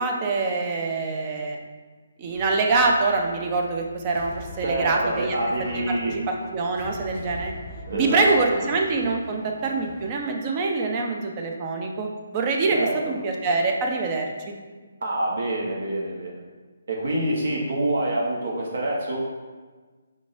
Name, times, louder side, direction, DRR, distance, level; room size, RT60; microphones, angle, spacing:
voice 1, 0.0-1.6 2.2-5.4 5.7-7.5 7.9-14.3, right 3 dB, 25° right, 2 dB, 0.5 m, -25 dB
Piano, 2.3-10.0, left 2 dB, 85° right, 1.2 m, -49 dB
sound 1, 4.1-10.1, left 3 dB, 40° left, 0.4 m, -41 dB
voice 2, 4.6-6.1 7.9-8.6 12.7-13.1 15.0-16.4 16.9-19.2, right 1 dB, 65° right, -2 dB, 1.0 m, -26 dB
5.1 x 3.8 x 2.5 m, 1.4 s
hypercardioid pair, 160°, 0 cm